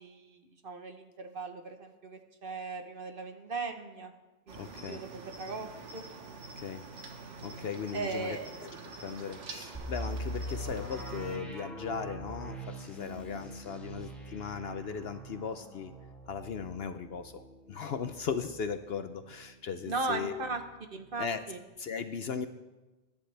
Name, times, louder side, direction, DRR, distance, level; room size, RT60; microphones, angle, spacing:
voice 1, 0.0-4.1 4.5-6.0 7.9-8.5 19.8-20.6 20.9-21.6, right 3 dB, 45° right, 5 dB, 1.2 m, -38 dB
voice 2, 4.5-5.0 6.6-6.9 7.4-8.4 8.6-8.7 9.0-15.9 16.3-17.4 17.7-20.4 21.2-21.4 21.8-22.5, left 6 dB, 60° left, 9 dB, 0.8 m, -37 dB
Cricket, 4.5-11.4, right 3 dB, 65° right, 1.6 m, -46 dB
sound 1, 9.7-19.5 19.8-19.9 20.4-20.7, right 1 dB, ahead, 2.3 m, -42 dB
22.5 x 10.5 x 3.4 m, 1.1 s
omnidirectional pair, 1.3 m